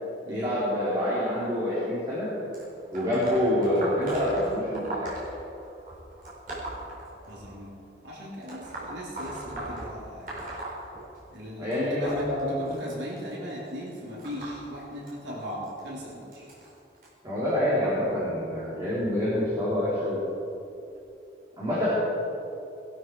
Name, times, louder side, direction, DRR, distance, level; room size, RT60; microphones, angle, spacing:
voice 1, 0.3-2.3 2.9-5.2 11.6-12.7 17.2-20.2 21.6-21.9, left 1 dB, 20° right, -10 dB, 3.7 m, -27 dB
sound 1, 2.5-7.7 8.4-11.4 11.7-17.1 17.9-18.1 19.2-19.3 20.2-20.3 21.0-21.1, right 1 dB, 50° right, 4.3 m, -39 dB
voice 2, 7.3-7.7 8.0-10.4 11.3-16.5, equal, 85° right, -5 dB, 3.6 m, -38 dB
18.5 x 12.0 x 4.7 m, 2.8 s
head